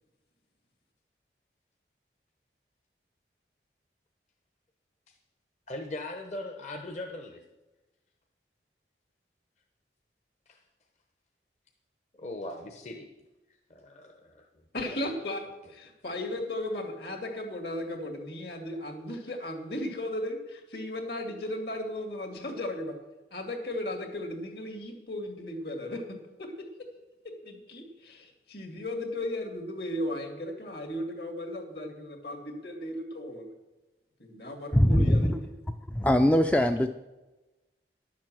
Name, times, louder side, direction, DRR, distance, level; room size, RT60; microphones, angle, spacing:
voice 1, 5.7-7.4 10.5-10.6 12.2-13.1 13.7-14.5 14.8-15.0 15.6-15.7, left 2 dB, 40° left, 3 dB, 0.9 m, -40 dB
voice 2, 14.7-15.4 15.7-22.9 23.3-26.0 26.4-26.7 27.4-33.5 34.2-35.4, left 1 dB, 65° left, 4 dB, 2.3 m, -36 dB
voice 3, 34.7-35.4 35.9-36.9, equal, 10° left, 6 dB, 0.4 m, -22 dB
11.0 x 7.4 x 7.5 m, 1.1 s
head